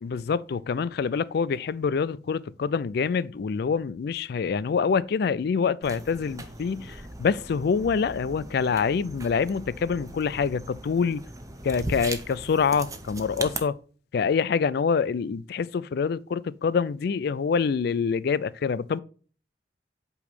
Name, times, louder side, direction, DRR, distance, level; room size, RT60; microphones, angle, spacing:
voice 1, 0.0-11.2 11.6-13.8 14.1-19.0, left 6 dB, 60° left, 0.3 m, -26 dB
sound 1, 5.8-13.6, right 2 dB, 20° right, 0.7 m, -39 dB
8.3 x 3.0 x 5.1 m
head